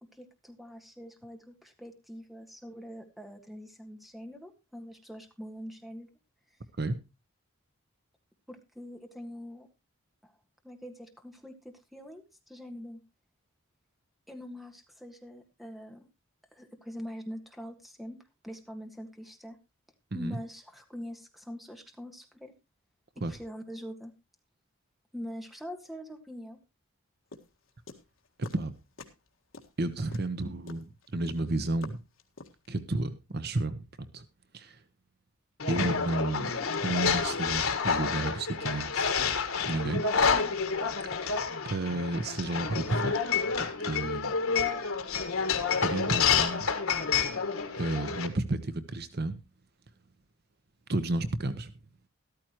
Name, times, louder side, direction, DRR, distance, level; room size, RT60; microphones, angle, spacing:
voice 1, 0.1-6.1 8.5-9.7 10.2-10.3 10.6-13.0 14.3-16.1 16.5-18.2 18.4-19.6 20.1-22.5 23.3-24.1 25.1-26.6, equal, ahead, 4 dB, 1.6 m, -44 dB
sound 1, 27.3-28.7 29.0-29.3 29.5-32.7, left 3 dB, 70° left, 1.8 m, -47 dB
voice 2, 28.4-28.7 29.8-32.0 32.7-34.2 34.5-34.8 35.7-36.5 36.8-39.1 39.6-40.0 41.1-41.4 41.6-43.2 43.6-44.3 45.7-46.7 47.7-49.4 50.9-51.7, right 2 dB, 50° right, 11 dB, 0.9 m, -32 dB
sound 2, 35.6-48.3, left 5 dB, 85° left, 1.6 m, -29 dB
13.5 x 13.0 x 3.0 m, 0.27 s
head